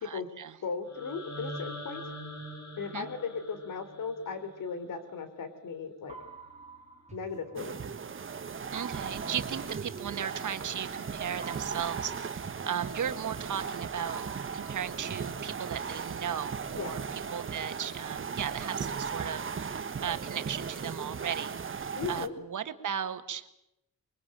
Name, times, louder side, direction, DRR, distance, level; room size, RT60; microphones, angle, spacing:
voice 1, 0.0-0.6 2.9-3.1 8.7-14.2 14.5-23.5, right 8 dB, 70° right, 9 dB, 1.8 m, -36 dB
voice 2, 0.6-2.0 2.8-6.2 7.1-7.7 16.7-16.9 22.0-22.3, left 5 dB, 90° left, 10 dB, 3.6 m, -37 dB
sound 1, 0.9-4.9, equal, 60° left, 6.2 m, -43 dB
sound 2, 6.1-8.2 8.8-10.8 11.4-13.7 14.1-16.2, right 4 dB, 20° right, 3.3 m, -49 dB
sound 3, 7.6-22.3, right 6 dB, 40° right, 1.3 m, -37 dB
24.5 x 23.0 x 8.8 m, 0.84 s
wide cardioid pair, 125°, 31 cm